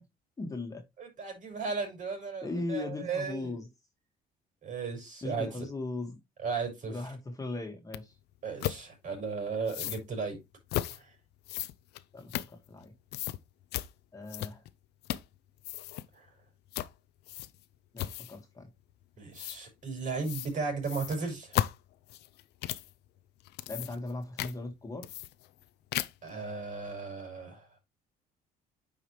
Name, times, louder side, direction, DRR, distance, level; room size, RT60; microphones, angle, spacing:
voice 1, 0.4-0.8 2.4-3.7 5.2-6.2 6.9-8.1 12.1-12.9 14.1-14.6 17.9-18.7 23.7-25.1, left 2 dB, 20° left, 1.9 m, -38 dB
voice 2, 1.0-3.6 4.6-5.7 6.4-7.1 8.4-10.4 10.9-11.1 16.1-16.3 19.2-21.6 26.2-27.8, right 4 dB, 50° right, 5.6 m, -36 dB
sound 1, 7.9-8.0 8.6-8.8 9.7-10.0 10.7-11.0 11.5-12.8 13.1-13.4 13.7-13.9 14.3-14.7 15.0-15.3 15.6-16.1 16.7-16.9 17.3-17.6 18.0-18.4 19.4-19.6 20.2-20.5 20.8-22.9 23.4-24.1 24.4-24.5 25.0-25.6 25.9-26.3, left 14 dB, 80° left, 0.6 m, -35 dB
9.2 x 5.0 x 3.2 m
cardioid pair, 110°, 17 cm